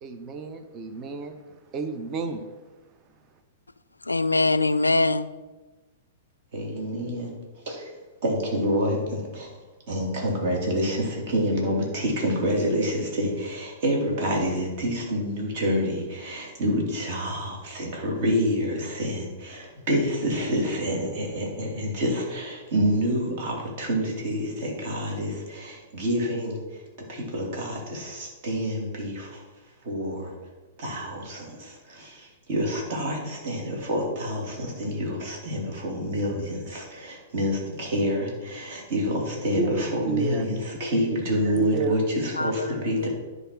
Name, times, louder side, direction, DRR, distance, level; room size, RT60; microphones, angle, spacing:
voice 1, 0.0-1.4 1.7-2.5 39.6-39.7 40.0-40.5 41.5-42.0, right 5 dB, 30° right, 0.8 m, -29 dB
voice 2, 4.0-5.3 42.3-42.7 43.0-43.1, left 2 dB, 85° left, 0.4 m, -23 dB
voice 3, 6.5-7.3 7.7-7.9 8.2-9.5 9.9-29.4 29.8-30.3 30.8-43.1, equal, 45° right, 2.7 m, -28 dB
10.0 x 4.0 x 5.9 m
figure-of-eight pair, 105°, 0 cm